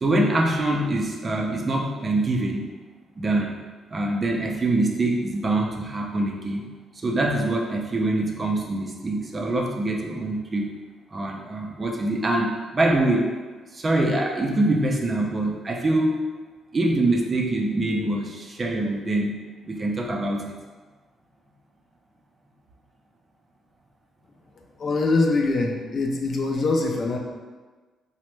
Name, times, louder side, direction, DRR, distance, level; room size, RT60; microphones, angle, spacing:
voice 1, 0.0-2.7 3.2-3.6 3.9-6.6 7.0-10.7 11.1-13.3 13.7-16.2 16.7-19.4 19.7-20.5, right 2 dB, 30° right, 1 dB, 0.4 m, -24 dB
voice 2, 24.8-27.2, left 3 dB, 50° left, 2 dB, 0.4 m, -23 dB
3.2 x 2.1 x 3.1 m, 1.4 s
cardioid pair, 90°, 0 cm